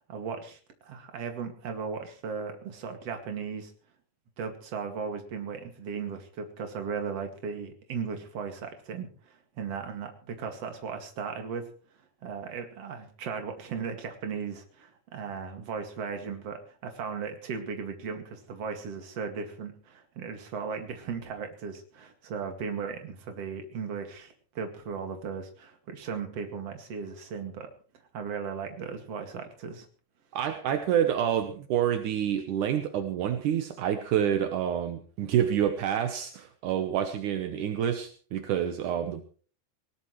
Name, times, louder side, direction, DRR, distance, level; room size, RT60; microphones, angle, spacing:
voice 1, 0.1-3.7 4.4-11.7 12.2-27.7 28.1-29.9, right 6 dB, 45° right, 5 dB, 2.7 m, -37 dB
voice 2, 30.3-39.2, right 9 dB, 70° right, 7 dB, 2.0 m, -28 dB
19.5 x 19.0 x 3.2 m, 0.41 s
omnidirectional pair, 4.9 m